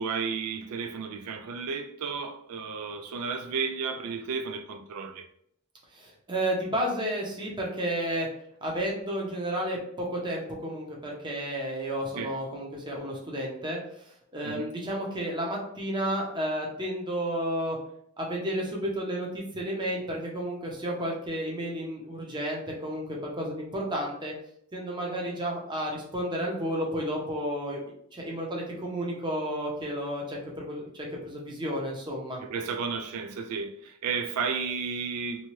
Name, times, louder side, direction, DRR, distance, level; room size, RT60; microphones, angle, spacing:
voice 1, 0.0-5.3 12.2-12.3 14.4-14.7 32.4-35.5, right 5 dB, 90° right, 0.3 m, -33 dB
voice 2, 5.9-8.3 8.6-13.8 14.3-17.8 18.2-24.3 24.7-27.8 28.1-32.4, equal, 20° right, 0.6 m, -32 dB
2.7 x 2.2 x 3.0 m
head